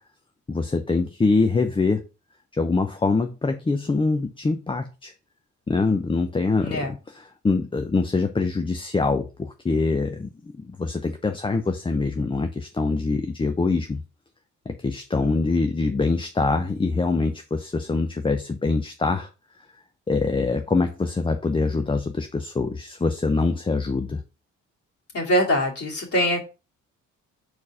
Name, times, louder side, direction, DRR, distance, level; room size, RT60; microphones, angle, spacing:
voice 1, 0.5-2.0 2.5-5.1 5.7-10.3 10.6-14.0 14.7-19.3 20.1-24.2, left 3 dB, 15° left, 0.6 m, -24 dB
voice 2, 6.6-6.9 25.1-26.4, equal, 50° left, 2.4 m, -23 dB
4.5 x 4.3 x 4.8 m
cardioid pair, 90°, 30 cm